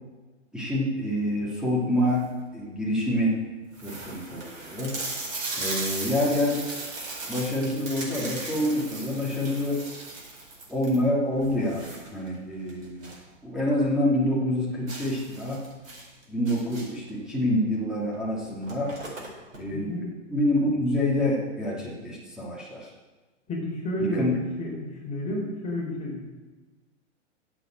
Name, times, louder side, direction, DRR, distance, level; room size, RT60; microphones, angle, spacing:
voice 1, 0.5-2.2 2.5-3.3 3.8-4.9 5.6-6.6 7.3-9.8 10.7-13.1 13.4-15.6 16.3-18.9 19.5-22.9 24.0-24.4, left 1 dB, ahead, -6 dB, 2.7 m, -27 dB
sound 1, 1.9-2.4 3.0-3.1 3.3-3.4 3.7-13.3 13.6-13.7 14.1-14.2 14.9-17.1 18.1-18.2 18.5-19.6, right 2 dB, 85° right, 4.5 m, -37 dB
voice 2, 19.7-20.0 23.5-24.3 24.6-26.2, left 1 dB, 20° left, -3 dB, 4.3 m, -31 dB
9.7 x 7.9 x 7.6 m, 1.3 s
hypercardioid pair, 125°, 38 cm